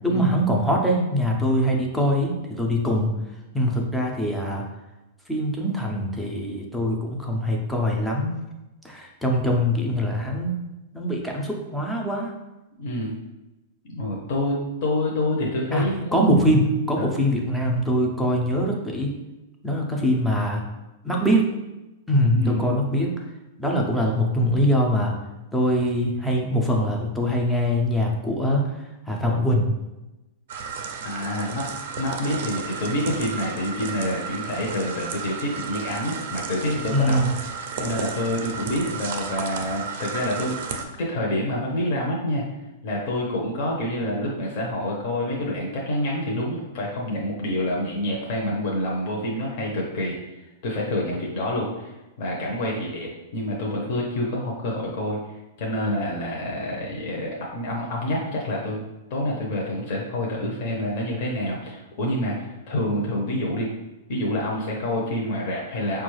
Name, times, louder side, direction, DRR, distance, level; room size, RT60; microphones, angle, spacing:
voice 1, 0.0-3.1 3.5-4.6 5.3-8.3 8.8-10.6 10.9-12.3 15.7-16.6 16.9-19.2 19.6-20.6 21.0-21.5 22.1-23.2 23.6-25.1 25.5-28.8 29.1-29.7 36.9-37.3, equal, ahead, -1 dB, 0.4 m, -23 dB
voice 2, 12.8-13.1 13.9-16.3 17.0-17.1 22.3-22.6 31.0-31.7 32.0-42.4 42.8-50.1 50.6-51.9 52.2-58.8 59.1-63.7 64.1-66.0, left 1 dB, 45° left, -2 dB, 0.6 m, -27 dB
sound 1, 30.5-40.8, right 5 dB, 55° right, 0.4 m, -33 dB
4.8 x 2.3 x 3.1 m, 1.0 s
supercardioid pair, 170°, 0 cm